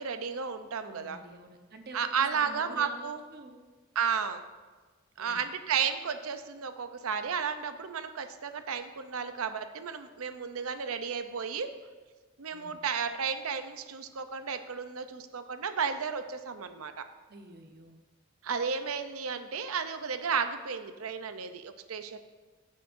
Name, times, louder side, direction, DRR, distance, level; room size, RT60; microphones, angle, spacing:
voice 1, 0.0-1.2 1.9-3.2 4.0-4.4 5.2-11.7 12.4-17.1 18.4-22.2, right 6 dB, 80° right, 9 dB, 0.6 m, -33 dB
voice 2, 0.8-3.6 5.2-5.5 12.5-12.8 17.3-18.0, right 3 dB, 50° right, 5 dB, 0.9 m, -48 dB
14.5 x 7.5 x 2.6 m, 1.3 s
head